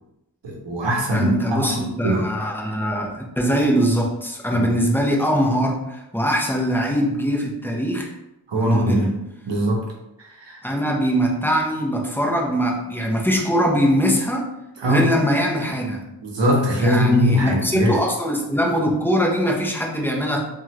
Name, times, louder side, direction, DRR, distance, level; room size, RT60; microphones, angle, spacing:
voice 1, 0.4-2.3 4.5-4.7 8.5-9.1 9.5-9.9 10.2-10.6 14.8-15.1 16.2-18.0, equal, 80° right, 0 dB, 0.8 m, -21 dB
voice 2, 1.1-8.1 8.5-9.1 10.6-14.5 14.8-16.0 16.7-20.4, equal, 5° left, -1 dB, 0.5 m, -22 dB
3.0 x 2.4 x 2.8 m, 0.89 s
wide cardioid pair, 75°, 43 cm